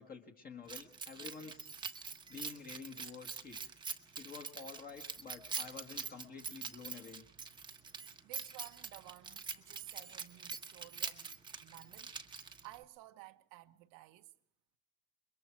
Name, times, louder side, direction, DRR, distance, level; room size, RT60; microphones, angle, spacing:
voice 1, 0.0-1.8 2.3-3.6 4.1-7.2, left 5 dB, 25° left, 1.6 m, -49 dB
Keys jangling, 0.7-12.8, right 5 dB, 15° right, 1.1 m, -45 dB
voice 2, 7.9-14.3, right 17 dB, 90° right, 1.4 m, -55 dB
28.5 x 22.5 x 4.6 m
cardioid pair, 180°, 33 cm